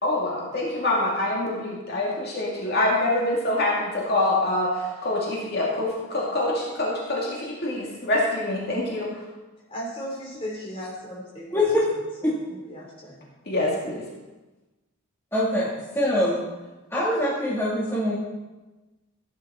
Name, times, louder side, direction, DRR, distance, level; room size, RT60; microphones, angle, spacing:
voice 1, 0.0-9.1 13.5-14.1, left 1 dB, 50° left, -4 dB, 2.2 m, -25 dB
voice 2, 9.7-12.0 12.2-13.3, equal, 25° left, -4 dB, 4.0 m, -37 dB
voice 3, 11.5-11.8 12.2-12.3 15.3-15.7 15.9-16.4 16.9-18.2, left 1 dB, 10° left, -7 dB, 1.8 m, -23 dB
15.5 x 9.5 x 4.3 m, 1.1 s
head